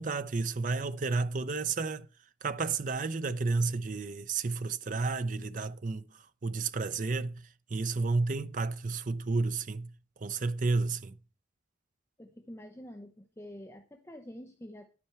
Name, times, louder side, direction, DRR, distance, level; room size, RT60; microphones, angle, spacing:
voice 1, 0.0-2.1 2.4-6.0 6.4-7.4 7.7-9.9 10.2-11.1, right 3 dB, 45° right, 0.5 m, -31 dB
voice 2, 12.2-14.9, equal, 15° left, 0.7 m, -47 dB
10.5 x 8.6 x 4.5 m
head